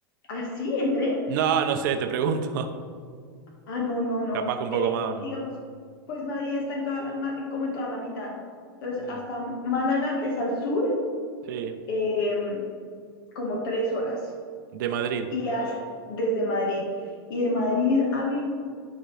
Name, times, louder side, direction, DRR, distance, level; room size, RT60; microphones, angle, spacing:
voice 1, 0.3-1.2 3.7-4.9 5.2-5.5 6.1-8.3 8.8-10.9 11.9-12.6 13.4-14.3 15.3-18.4, left 2 dB, 60° left, -1 dB, 1.6 m, -28 dB
voice 2, 1.3-2.7 4.3-5.3 9.0-9.2 11.5-11.8 14.7-15.3, right 7 dB, 55° right, 7 dB, 0.7 m, -27 dB
11.5 x 5.1 x 3.4 m, 2.1 s
supercardioid pair, 165°, 13 cm